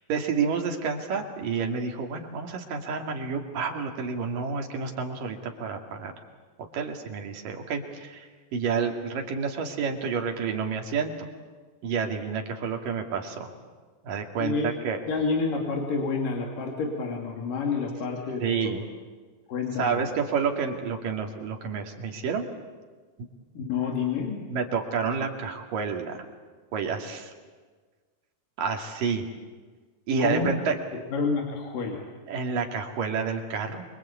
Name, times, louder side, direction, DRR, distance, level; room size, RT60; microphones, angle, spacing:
voice 1, 0.1-6.1 6.7-11.3 11.8-13.5 14.0-15.0 18.4-18.8 19.8-22.5 23.2-23.3 24.5-26.2 26.7-27.3 28.6-29.3 30.1-30.8 32.3-33.8, right 5 dB, 80° right, 3 dB, 4.1 m, -29 dB
voice 2, 15.1-18.7 19.5-20.0 23.5-24.5 30.2-30.5 30.9-32.1, left 4 dB, 80° left, 1 dB, 4.3 m, -29 dB
28.0 x 23.5 x 8.5 m, 1.4 s
omnidirectional pair, 3.8 m